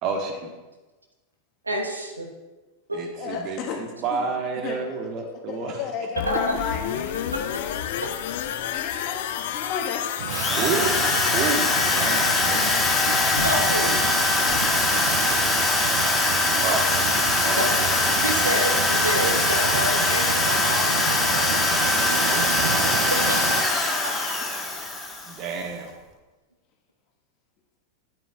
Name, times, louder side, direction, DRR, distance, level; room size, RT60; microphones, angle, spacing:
voice 1, 0.0-0.5 2.9-5.8 10.5-10.9 11.3-12.7 16.6-16.9 17.4-17.6 21.7-23.0 25.2-26.0, right 5 dB, 40° right, 4 dB, 1.3 m, -30 dB
voice 2, 1.7-2.2 2.9-3.0 6.3-6.5 7.3-7.4 9.6-9.7 10.3-10.5 13.4-14.1 17.6-17.7 18.2-21.5 23.3-23.4, right 1 dB, 80° right, 2 dB, 1.2 m, -28 dB
voice 3, 3.2-4.3 4.6-5.0 5.5-7.2 8.7-10.0 14.3-15.8 17.3-17.8 18.5-18.7 22.0-22.3 24.4-24.5, left 6 dB, 35° left, 1 dB, 1.4 m, -34 dB
sound 1, 6.2-15.9 16.2-16.3, left 10 dB, 55° left, 0.5 m, -31 dB
sound 2, 10.2-23.6, right 9 dB, 55° right, 0.5 m, -32 dB
Drill, 10.3-25.5, left 2 dB, 10° left, 1.3 m, -22 dB
12.5 x 9.0 x 2.4 m, 1.2 s
figure-of-eight pair, 90°, 0 cm